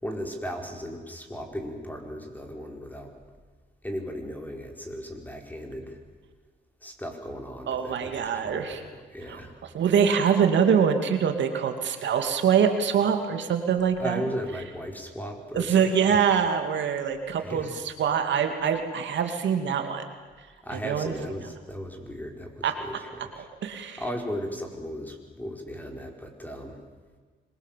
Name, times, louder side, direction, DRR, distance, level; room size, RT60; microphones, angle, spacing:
voice 1, 0.0-3.1 3.8-6.0 6.8-8.8 9.1-9.5 14.0-16.2 17.4-17.8 20.6-23.1 23.3-23.5 24.0-26.8, equal, 10° left, 3 dB, 5.0 m, -36 dB
voice 2, 7.7-8.8 9.3-14.3 15.5-20.1 20.7-21.1 22.6-22.7 23.6-24.0, right 7 dB, 65° right, 5 dB, 2.6 m, -24 dB
26.0 x 22.5 x 7.6 m, 1.5 s
cardioid pair, 90°, 20 cm